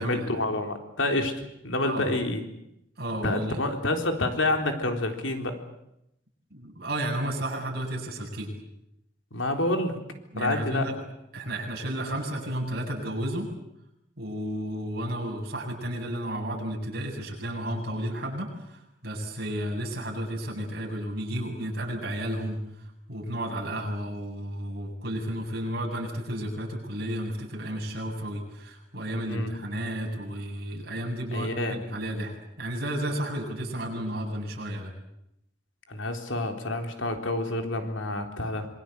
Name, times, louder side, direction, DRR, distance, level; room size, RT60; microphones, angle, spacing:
voice 1, 0.0-2.4 3.2-5.6 9.3-10.0 10.4-10.9 29.3-29.6 31.3-31.8 35.9-38.7, left 2 dB, 90° left, 4 dB, 3.9 m, -28 dB
voice 2, 3.0-3.6 6.5-8.5 10.3-10.9 11.3-13.5 14.2-22.6 23.1-34.9, right 1 dB, 55° right, 0 dB, 8.0 m, -32 dB
26.5 x 23.0 x 8.3 m, 0.81 s
head